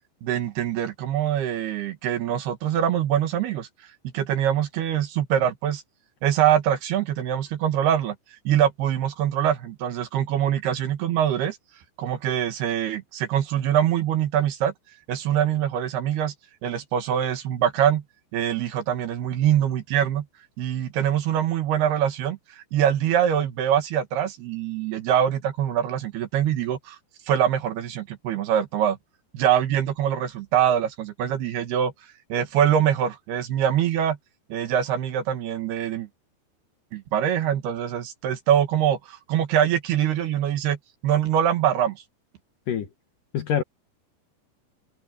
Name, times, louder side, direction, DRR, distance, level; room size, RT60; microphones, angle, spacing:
voice 1, 0.2-3.7 4.1-5.8 6.2-8.2 8.4-11.6 12.0-14.7 15.1-16.3 16.6-18.0 18.3-20.2 20.6-27.0 27.3-29.0 29.3-31.9 32.3-34.2 34.5-36.1 36.9-40.8 41.0-42.0, right 10 dB, 65° right, 3.4 m, -24 dB
voice 2, 42.7-42.9 43.3-43.6, left 9 dB, 60° left, 2.5 m, -25 dB
omnidirectional pair, 5.2 m